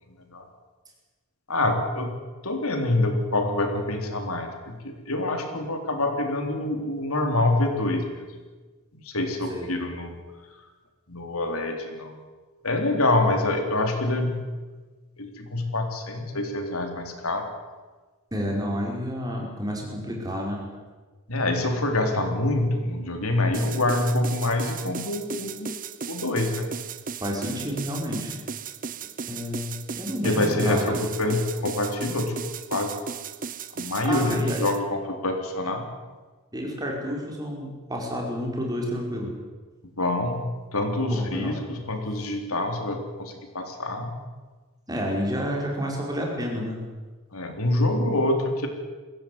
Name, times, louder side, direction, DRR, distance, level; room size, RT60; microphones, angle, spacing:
voice 1, 0.1-0.5 1.5-2.1 2.4-8.2 9.0-10.1 11.1-12.1 12.6-14.4 15.2-17.5 21.3-25.7 26.1-26.7 30.2-32.3 32.7-32.9 33.7-35.8 40.0-44.1 47.3-48.7, left 2 dB, 75° left, 4 dB, 3.8 m, -26 dB
voice 2, 18.3-20.6 27.2-28.3 29.3-31.0 34.0-34.6 36.5-39.4 41.1-41.5 44.9-46.8, equal, 15° right, 0 dB, 5.1 m, -30 dB
sound 1, 23.5-34.8, right 6 dB, 40° right, 0.9 m, -36 dB
22.0 x 16.5 x 9.6 m, 1.3 s
head